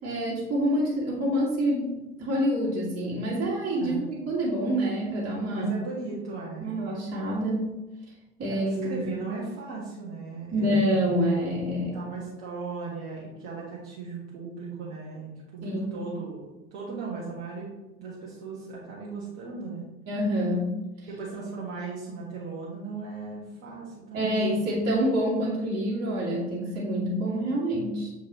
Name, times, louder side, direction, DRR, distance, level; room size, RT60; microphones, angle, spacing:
voice 1, 0.0-5.7 6.6-7.7 8.4-9.1 10.5-11.9 15.6-16.1 20.1-20.8 24.1-28.1, equal, 45° right, -7 dB, 2.1 m, -27 dB
voice 2, 5.5-6.8 8.5-11.0 11.9-16.4 16.7-17.7 18.0-19.8 21.1-24.7, right 4 dB, 65° right, -6 dB, 1.6 m, -37 dB
7.1 x 4.6 x 3.0 m, 1.0 s
figure-of-eight pair, 60°, 35 cm